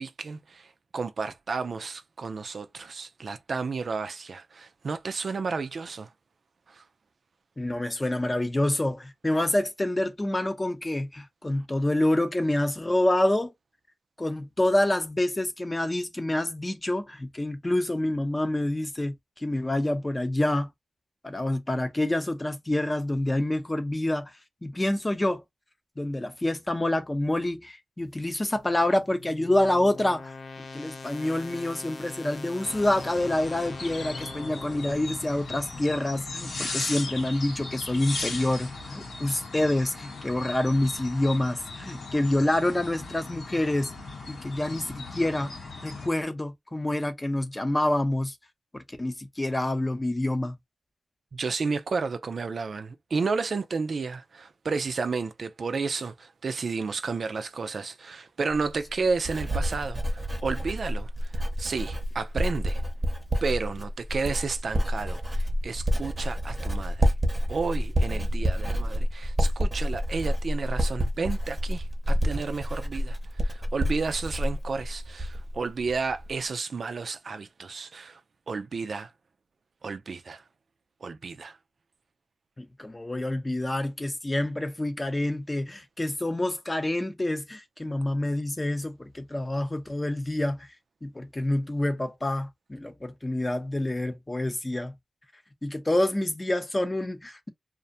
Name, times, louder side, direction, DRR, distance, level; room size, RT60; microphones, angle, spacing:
voice 1, 0.0-6.1 6.7-6.8 51.3-62.8 63.4-67.1 67.5-78.2 78.5-79.1 79.8-80.4 81.0-81.6, right 4 dB, 65° right, 0.3 m, -32 dB
voice 2, 7.6-13.5 14.2-20.7 21.2-24.3 24.6-25.4 26.0-30.3 30.7-43.9 44.3-45.5 45.8-48.4 48.7-50.5 82.6-90.7 91.0-95.0 95.6-97.5, left 1 dB, 25° left, 0.7 m, -27 dB
sound 1, 28.6-35.7, left 3 dB, 65° left, 0.5 m, -43 dB
sound 2, 32.6-46.1, left 3 dB, 80° left, 1.0 m, -38 dB
Writing, 58.5-75.6 75.9-76.3, equal, 25° right, 0.7 m, -28 dB
2.5 x 2.1 x 2.6 m
cardioid pair, 70°, 0 cm